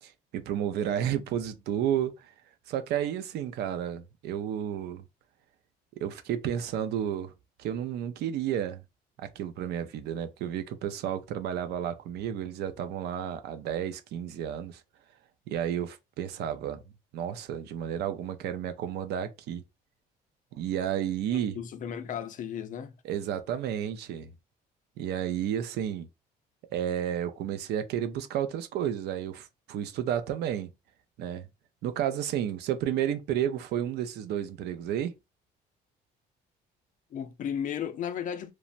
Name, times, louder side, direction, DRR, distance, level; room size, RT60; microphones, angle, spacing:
voice 1, 0.0-2.3 2.7-5.0 6.0-7.3 7.6-8.8 9.2-14.8 15.5-16.8 17.1-19.6 20.5-21.6 23.0-24.3 25.0-26.1 26.7-30.7 31.2-31.5 31.8-35.1, right 10 dB, 75° right, 0.5 m, -31 dB
voice 2, 21.3-23.0 37.1-38.5, left 8 dB, 50° left, 0.5 m, -35 dB
3.1 x 2.1 x 2.5 m
cardioid pair, 110°, 17 cm